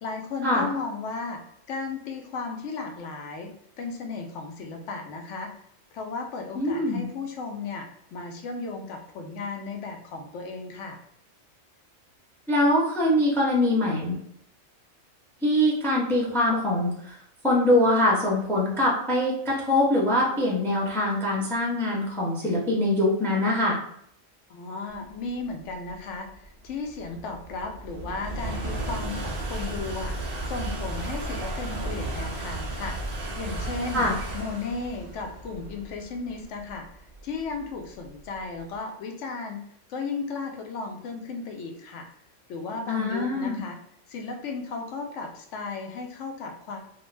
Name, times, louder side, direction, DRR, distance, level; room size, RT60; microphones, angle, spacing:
voice 1, 0.0-3.5 3.8-5.5 5.9-11.0 24.5-33.1 33.4-36.9 37.2-39.6 39.9-42.1 42.5-43.8 44.1-46.8, left 4 dB, 70° left, 4 dB, 0.9 m, -35 dB
voice 2, 6.5-7.1 12.5-14.2 15.4-17.2 17.4-23.8 33.9-34.1 42.9-43.6, left 1 dB, 5° left, -3 dB, 0.3 m, -23 dB
sound 1, 25.3-38.6, right 2 dB, 75° right, 0.3 m, -34 dB
2.4 x 2.1 x 3.1 m, 0.69 s
omnidirectional pair, 1.3 m